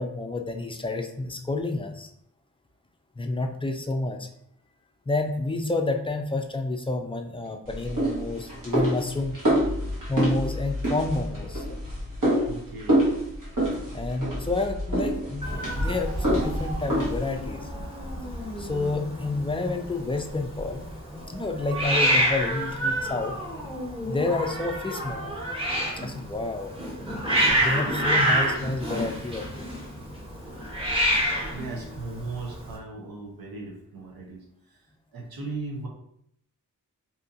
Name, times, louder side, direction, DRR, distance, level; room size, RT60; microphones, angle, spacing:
voice 1, 0.0-2.1 3.2-4.3 5.1-9.4 10.1-11.8 13.9-17.7 18.6-20.9 21.3-23.3 24.1-25.3 26.0-26.7 27.6-29.4, left 2 dB, 15° left, 4 dB, 0.3 m, -29 dB
sound 1, 7.7-17.4, equal, 60° right, 1.2 m, -27 dB
voice 2, 12.4-13.0 30.0-30.1 31.4-34.8 35.1-35.9, right 3 dB, 80° right, -1 dB, 0.8 m, -37 dB
Hiss, 15.4-32.7, equal, 15° right, 1.2 m, -28 dB
2.7 x 2.5 x 2.5 m, 0.71 s
cardioid pair, 50°, 36 cm